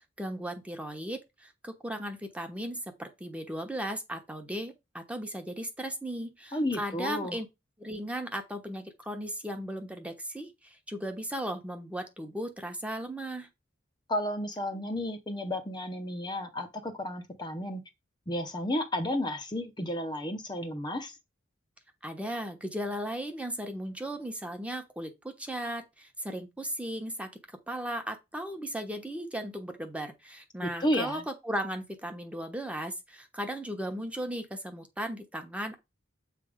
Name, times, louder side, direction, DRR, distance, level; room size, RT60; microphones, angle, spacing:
voice 1, 0.2-7.5 7.8-13.5 22.0-27.3 27.7-35.8, equal, 5° right, 1.1 m, -36 dB
voice 2, 6.5-7.4 14.1-17.8 18.3-21.1 30.6-31.2, left 1 dB, 25° left, 0.8 m, -32 dB
8.1 x 3.5 x 5.1 m
head